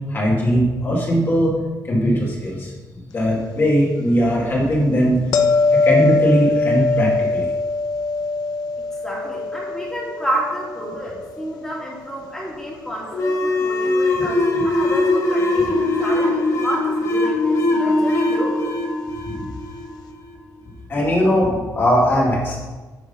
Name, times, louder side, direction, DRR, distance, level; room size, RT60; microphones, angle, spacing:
voice 1, 0.0-1.6 1.8-5.2 5.8-7.5 19.2-19.5 20.9-22.6, equal, 35° left, -4 dB, 2.2 m, -19 dB
sound 1, 5.3-12.3 17.6-17.7, left 3 dB, 80° left, 0.8 m, -22 dB
voice 2, 9.0-17.4 17.7-18.6, right 1 dB, 5° left, -4 dB, 2.3 m, -30 dB
sound 2, 13.1-20.3, left 2 dB, 50° left, 1.4 m, -20 dB
9.5 x 4.9 x 5.5 m, 1.3 s
cardioid pair, 155°, 7 cm